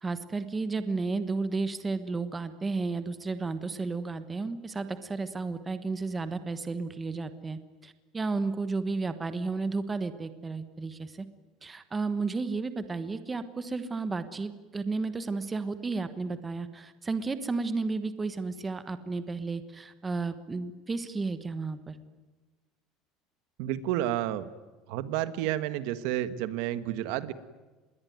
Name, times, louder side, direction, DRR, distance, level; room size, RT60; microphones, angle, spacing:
voice 1, 0.0-11.3 11.6-22.0, right 3 dB, 15° right, 11 dB, 1.2 m, -33 dB
voice 2, 23.6-24.5 24.9-27.3, right 13 dB, 65° right, 13 dB, 1.5 m, -30 dB
27.0 x 21.5 x 9.4 m, 1.2 s
cardioid pair, 170°, 0 cm